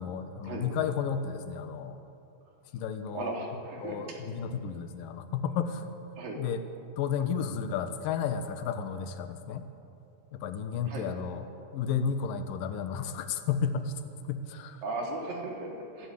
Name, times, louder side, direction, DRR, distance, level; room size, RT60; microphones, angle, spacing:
voice 1, 0.0-2.0 2.7-3.3 3.8-5.9 6.4-6.6 7.0-9.7 10.3-11.4 11.7-13.9 14.2-14.8, left 7 dB, 75° left, 9 dB, 2.9 m, -32 dB
voice 2, 3.1-4.2 6.2-6.4 10.8-11.1 14.8-16.1, right 2 dB, 80° right, 0 dB, 5.2 m, -36 dB
24.0 x 16.5 x 8.5 m, 2.7 s
omnidirectional pair, 4.0 m